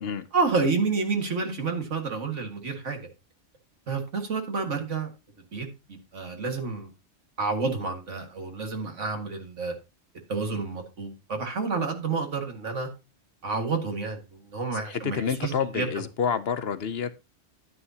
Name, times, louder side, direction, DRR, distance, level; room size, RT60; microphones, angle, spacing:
voice 1, 0.3-3.0 3.9-5.1 5.5-6.9 7.4-9.7 10.3-12.9 13.4-15.9, right 4 dB, 75° right, 2.2 m, -29 dB
voice 2, 14.7-17.3, left 7 dB, 60° left, 0.9 m, -29 dB
11.0 x 9.7 x 2.8 m
omnidirectional pair, 1.2 m